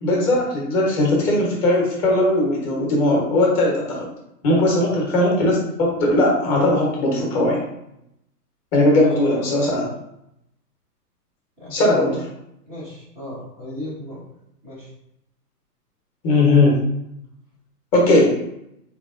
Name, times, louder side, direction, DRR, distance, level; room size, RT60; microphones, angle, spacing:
voice 1, 0.0-4.1 4.4-7.6 8.7-9.9 11.7-12.3 16.2-16.8 17.9-18.3, left 2 dB, 25° left, -3 dB, 1.1 m, -18 dB
voice 2, 9.0-9.5 11.6-11.8 12.7-14.2 14.6-14.9, left 1 dB, ahead, -22 dB, 0.3 m, -36 dB
3.5 x 3.2 x 2.5 m, 0.82 s
hypercardioid pair, 130°, 48 cm